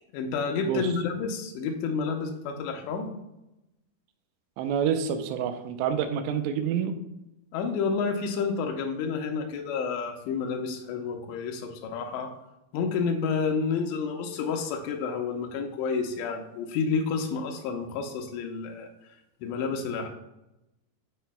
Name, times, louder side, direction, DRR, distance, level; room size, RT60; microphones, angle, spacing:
voice 1, 0.1-3.1 7.5-12.3 12.7-18.9 19.4-20.1, left 5 dB, 90° left, 3 dB, 2.9 m, -30 dB
voice 2, 4.6-6.9, right 8 dB, 85° right, 8 dB, 2.8 m, -28 dB
13.5 x 4.7 x 2.3 m, 0.92 s
omnidirectional pair, 4.9 m